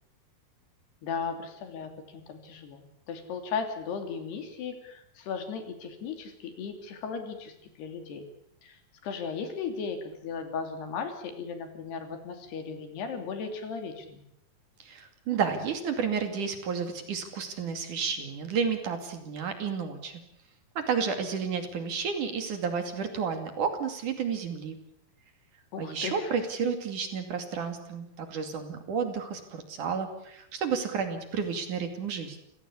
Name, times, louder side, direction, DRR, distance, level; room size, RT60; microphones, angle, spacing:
voice 1, 1.0-2.8 3.1-8.3 8.6-14.2 25.7-26.3, left 5 dB, 80° left, 6 dB, 5.0 m, -36 dB
voice 2, 14.8-20.2 20.8-24.8 25.8-32.4, right 6 dB, 55° right, 6 dB, 3.8 m, -31 dB
28.0 x 17.0 x 8.5 m, 0.77 s
omnidirectional pair, 4.6 m